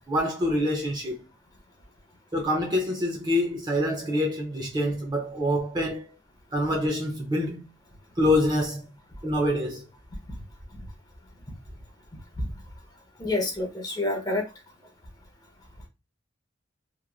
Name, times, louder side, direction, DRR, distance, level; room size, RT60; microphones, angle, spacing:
voice 1, 0.1-1.2 2.3-6.1 6.5-7.7 8.2-8.9 9.2-9.9, left 1 dB, 20° right, 0.4 m, -26 dB
voice 2, 13.2-14.5, left 2 dB, 20° left, 0.7 m, -28 dB
2.9 x 2.3 x 2.3 m
head